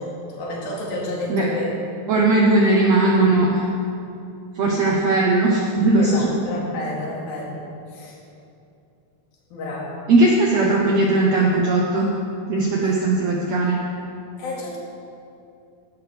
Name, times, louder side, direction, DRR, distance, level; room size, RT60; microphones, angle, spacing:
voice 1, 0.0-1.8 6.0-7.6 7.9-8.2 9.5-10.0 14.4-14.8, left 1 dB, 75° left, -3 dB, 3.8 m, -30 dB
voice 2, 2.1-3.6 4.5-6.3 10.1-12.1 12.5-13.8, right 2 dB, 75° right, -2 dB, 1.6 m, -18 dB
16.0 x 11.0 x 3.4 m, 2.6 s
omnidirectional pair, 4.3 m